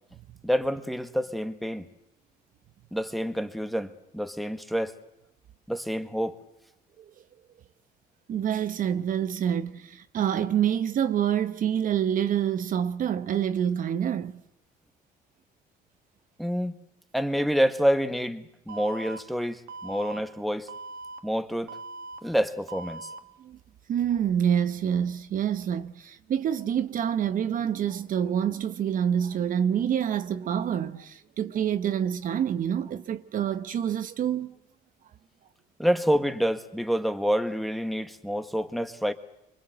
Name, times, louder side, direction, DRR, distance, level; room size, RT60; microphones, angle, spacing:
voice 1, 0.4-1.8 2.9-4.9 5.7-6.4 16.4-16.8 17.1-20.7 21.2-21.8 22.2-23.1 35.8-39.1, equal, ahead, 1.6 m, -27 dB
voice 2, 8.3-14.4 23.4-23.6 23.9-34.5, right 9 dB, 55° right, 1.0 m, -27 dB
Alarm, 18.7-19.2 19.7-20.2 20.7-21.2 21.7-22.2 22.7-23.2, right 3 dB, 75° right, 1.5 m, -40 dB
25.5 x 22.5 x 7.9 m
cardioid pair, 110°, 17 cm